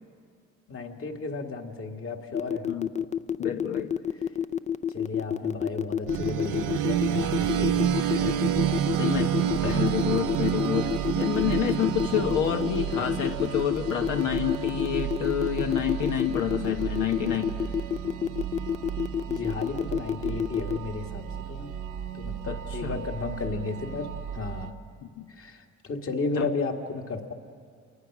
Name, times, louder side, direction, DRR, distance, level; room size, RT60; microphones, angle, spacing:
voice 1, 0.7-2.7 4.9-8.5 9.6-9.9 12.2-12.3 12.9-13.0 19.3-21.2 21.5-21.7 22.1-24.1 24.3-24.7 25.4-27.3, left 3 dB, 45° left, 3 dB, 2.0 m, -34 dB
sound 1, 2.3-20.8, left 8 dB, 25° left, 0.5 m, -28 dB
voice 2, 3.4-3.9 8.9-9.3 9.7-17.5 22.5-23.0 25.0-25.3 26.3-26.5, left 9 dB, 85° left, 4 dB, 1.1 m, -29 dB
sound 2, 6.1-24.7, right 9 dB, 90° right, 1.0 m, -30 dB
28.5 x 19.0 x 6.1 m, 2.2 s
cardioid pair, 90°, 30 cm